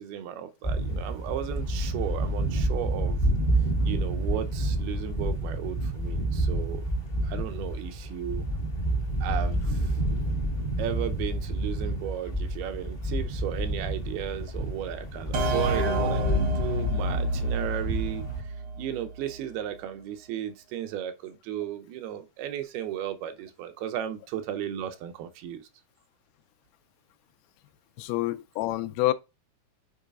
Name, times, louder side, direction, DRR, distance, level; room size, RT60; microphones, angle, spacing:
voice 1, 0.0-3.2 3.8-6.8 7.2-8.5 9.2-9.9 10.8-18.2 18.8-25.7, right 10 dB, 90° right, 2.7 m, -35 dB
sound 1, 0.6-18.4, right 1 dB, 50° left, 0.6 m, -29 dB
sound 2, 15.3-18.9, equal, 70° right, 1.3 m, -28 dB
voice 2, 28.0-29.1, left 16 dB, 90° left, 2.5 m, -27 dB
8.7 x 4.7 x 2.4 m
omnidirectional pair, 4.3 m